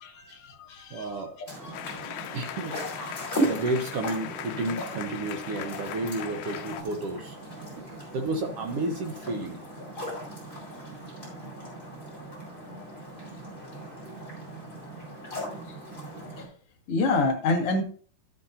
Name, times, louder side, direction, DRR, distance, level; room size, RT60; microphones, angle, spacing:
voice 1, 0.0-1.3 1.6-1.8 16.4-16.5 16.9-17.8, left 3 dB, 50° left, 2.2 m, -28 dB
voice 2, 0.9-1.3 2.3-2.8 3.4-7.4 7.7-9.6, right 2 dB, 70° right, 1.4 m, -31 dB
sound 1, 1.5-16.5, right 1 dB, 15° left, 4.7 m, -37 dB
sound 2, 1.7-6.8, left 11 dB, 80° left, 2.3 m, -39 dB
13.0 x 8.5 x 2.7 m
omnidirectional pair, 3.9 m